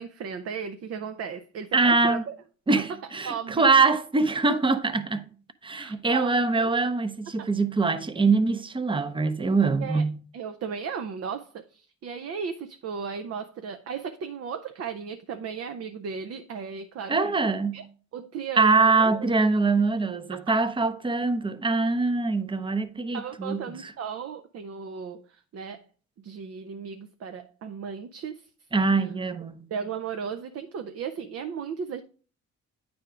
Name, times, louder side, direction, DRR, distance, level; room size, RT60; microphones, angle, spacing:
voice 1, 0.0-2.3 2.8-2.9 3.2-3.7 5.7-6.7 7.3-7.5 9.8-10.0 10.3-17.8 18.1-19.2 20.3-20.6 23.1-25.9 26.2-28.7 29.7-32.0, right 6 dB, 55° right, 0.6 m, -36 dB
voice 2, 1.7-2.2 2.7-5.3 5.6-10.1 17.1-17.8 18.6-23.9 28.7-29.7, right 3 dB, 15° right, 0.7 m, -23 dB
9.0 x 3.5 x 4.9 m
cardioid pair, 90°, 30 cm